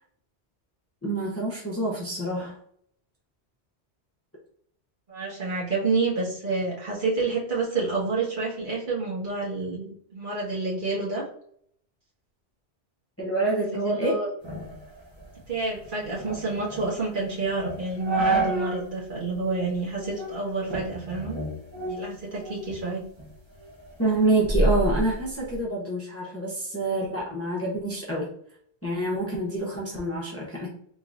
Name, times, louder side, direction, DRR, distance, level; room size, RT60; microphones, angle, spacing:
voice 1, 1.0-2.6 13.2-14.1 24.0-28.3 28.8-30.7, right 2 dB, 15° left, -4 dB, 0.7 m, -27 dB
voice 2, 5.1-11.2 13.7-14.3 15.5-21.4 21.7-23.0, right 3 dB, 50° right, -5 dB, 1.5 m, -29 dB
sound 1, 14.4-18.9 19.3-19.4 20.0-20.4 20.7-22.8 23.2-25.6, right 2 dB, 30° right, 0.7 m, -30 dB
3.7 x 3.1 x 2.5 m, 0.64 s
omnidirectional pair, 1.1 m